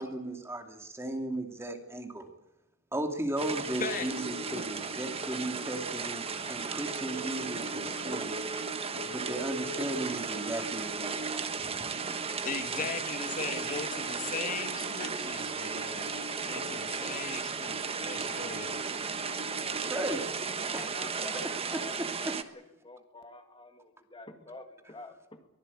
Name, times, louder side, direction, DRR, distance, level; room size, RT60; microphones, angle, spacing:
voice 1, 0.0-2.3 2.9-8.4 9.0-12.0 13.7-13.8 19.7-20.3 20.7-20.9 21.2-22.5, right 1 dB, 10° right, 4 dB, 2.6 m, -36 dB
sound 1, 3.4-22.4, right 5 dB, 30° right, 1.3 m, -35 dB
sound 2, 3.8-20.4, right 1 dB, 55° right, 2.4 m, -44 dB
voice 2, 12.4-16.1 16.4-19.1, left 4 dB, 40° left, 7 dB, 1.9 m, -38 dB
voice 3, 20.6-25.5, left 3 dB, 25° left, 6 dB, 2.1 m, -48 dB
23.5 x 16.5 x 8.7 m, 0.90 s
head